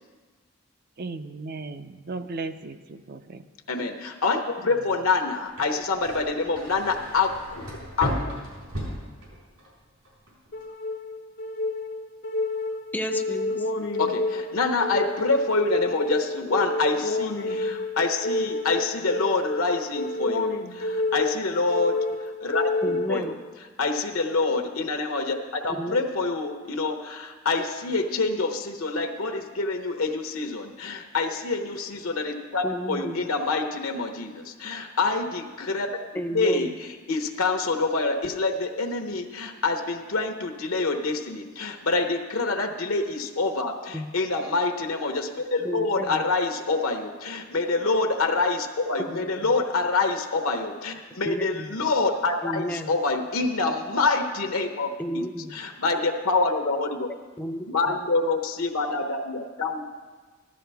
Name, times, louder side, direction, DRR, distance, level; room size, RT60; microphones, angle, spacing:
voice 1, 1.0-3.4 4.6-4.7, right 3 dB, 45° right, 10 dB, 0.5 m, -36 dB
voice 2, 3.7-8.4 14.0-23.3 23.8-35.9 36.1-55.2 55.5-57.1 57.7-59.9, left 3 dB, 75° left, 4 dB, 0.9 m, -26 dB
sound 1, 5.6-9.7 10.1-10.6, equal, 80° right, 4.0 m, -35 dB
sound 2, 10.5-23.5, left 2 dB, 55° left, 0.6 m, -29 dB
voice 3, 12.9-13.7 22.8-23.4 25.8-26.0 32.6-33.2 36.1-36.7 43.9-44.1 45.6-46.2 49.1-49.5 51.2-51.7 52.4-52.9 55.0-55.6 57.4-58.0, equal, 10° left, 6 dB, 0.5 m, -32 dB
14.5 x 12.0 x 3.5 m, 1.4 s
head